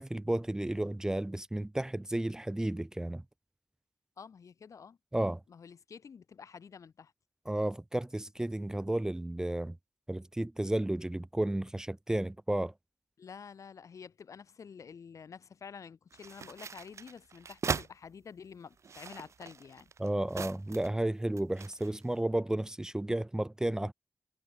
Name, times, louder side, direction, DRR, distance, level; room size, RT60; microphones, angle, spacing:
voice 1, 0.0-3.2 5.1-5.4 7.5-9.8 10.1-12.7 20.0-23.9, right 1 dB, 10° right, 0.7 m, -32 dB
voice 2, 4.2-5.0 5.5-7.1 13.2-19.9, left 6 dB, 80° left, 6.7 m, -49 dB
sound 1, 16.1-17.9 18.7-21.0 21.4-22.0, right 6 dB, 65° right, 2.0 m, -39 dB
wide cardioid pair, 160°, 5 cm